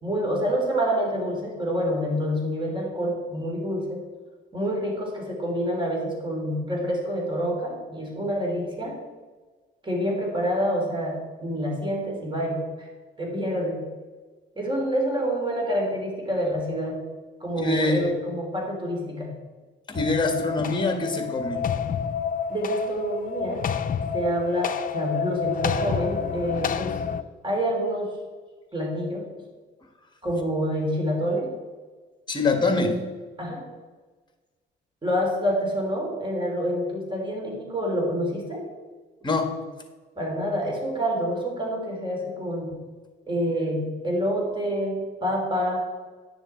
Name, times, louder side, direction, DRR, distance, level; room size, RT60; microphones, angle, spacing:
voice 1, 0.0-4.1 4.5-9.0 9.8-12.9 13.2-13.9 14.5-17.0 17.4-19.4 22.5-23.7 24.1-27.0 27.4-28.1 28.7-29.2 30.2-31.5 32.7-32.9 33.4-33.6 35.0-38.6 40.2-42.8 43.3-45.9, equal, 25° right, -1 dB, 3.3 m, -27 dB
voice 2, 17.6-18.1 19.9-21.7 32.3-33.0 39.2-39.5, left 3 dB, 25° left, 5 dB, 1.6 m, -24 dB
sound 1, 19.9-27.2, left 6 dB, 45° left, 0.5 m, -29 dB
9.9 x 6.6 x 4.5 m, 1.3 s
cardioid pair, 90°, 20 cm